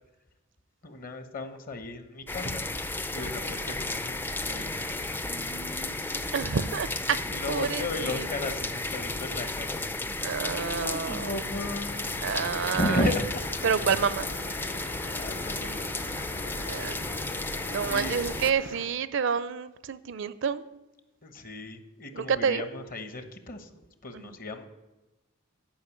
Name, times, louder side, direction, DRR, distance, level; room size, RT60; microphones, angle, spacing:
voice 1, 0.8-2.6 3.1-4.7 5.2-6.4 7.3-9.9 10.4-12.1 12.7-13.4 14.5-14.8 15.1-15.8 17.6-18.2 21.2-24.7, left 2 dB, 45° left, 9 dB, 1.0 m, -35 dB
sound 1, 2.3-18.5, left 2 dB, 10° left, 0.4 m, -33 dB
voice 2, 6.3-7.2 7.5-8.3 10.2-11.3 12.2-13.1 13.6-14.3 16.7-17.0 17.7-20.6 22.1-22.6 24.1-24.3, right 6 dB, 65° right, 16 dB, 0.5 m, -29 dB
sound 2, 11.4-18.9, left 2 dB, 75° left, 2.3 m, -42 dB
10.5 x 5.3 x 8.3 m, 1.1 s
head